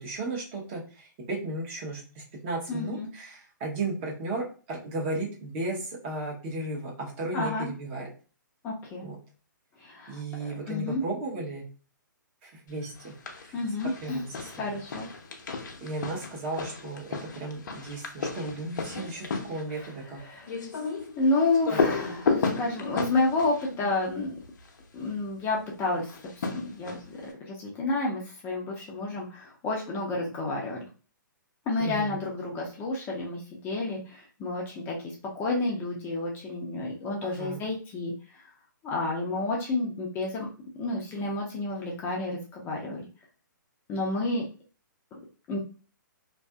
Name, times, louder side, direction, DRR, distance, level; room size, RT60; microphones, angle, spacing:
voice 1, 0.0-8.1 9.0-9.2 10.1-11.6 12.4-13.1 13.4-14.8 15.8-20.2 21.7-21.8 31.8-32.2 37.2-37.6, right 2 dB, 35° right, -2 dB, 0.8 m, -35 dB
voice 2, 2.7-3.1 7.3-7.7 8.6-9.1 9.8-11.0 13.5-14.2 14.6-15.1 19.7-19.9 20.2-20.5 21.2-24.4 24.9-26.1 26.3-27.0 27.4-30.8 31.7-35.0 35.4-38.1 38.8-40.5 40.8-43.0 43.9-44.4 45.5-45.6, left 2 dB, 20° left, -2 dB, 0.5 m, -30 dB
sound 1, 13.0-13.5 13.8-24.8 26.0-27.3, left 4 dB, 65° left, 0.6 m, -33 dB
2.6 x 2.5 x 2.2 m, 0.37 s
hypercardioid pair, 140°, 11 cm